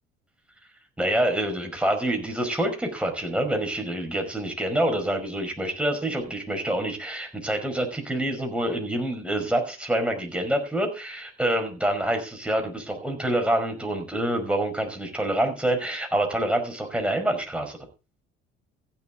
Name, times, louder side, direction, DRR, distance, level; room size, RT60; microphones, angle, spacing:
voice 1, 1.0-17.8, right 1 dB, 5° right, 3 dB, 5.5 m, -26 dB
15.0 x 10.5 x 3.7 m, 0.30 s
figure-of-eight pair, 50°, 35 cm